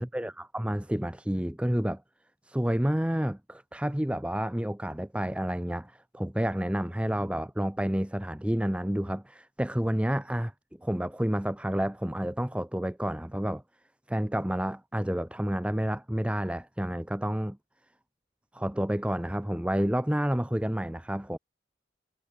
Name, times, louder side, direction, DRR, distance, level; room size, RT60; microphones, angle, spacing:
voice 1, 0.0-2.0 2.4-10.5 10.8-13.6 14.1-17.6 18.5-21.4, equal, 5° right, 0.7 m, -29 dB
head